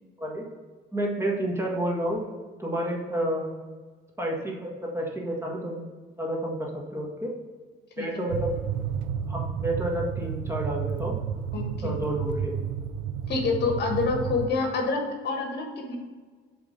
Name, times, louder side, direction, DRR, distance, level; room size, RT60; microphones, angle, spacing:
voice 1, 0.9-2.2 2.6-3.5 4.2-5.8 6.2-7.3 8.0-8.5 9.3-11.2 11.8-12.7, right 1 dB, 15° right, -2 dB, 1.5 m, -30 dB
sound 1, 8.3-14.5, right 8 dB, 85° right, 0.5 m, -31 dB
voice 2, 11.5-11.9 13.3-16.0, left 4 dB, 55° left, 2 dB, 1.4 m, -27 dB
7.8 x 3.6 x 5.1 m, 1.4 s
cardioid pair, 115°, 20 cm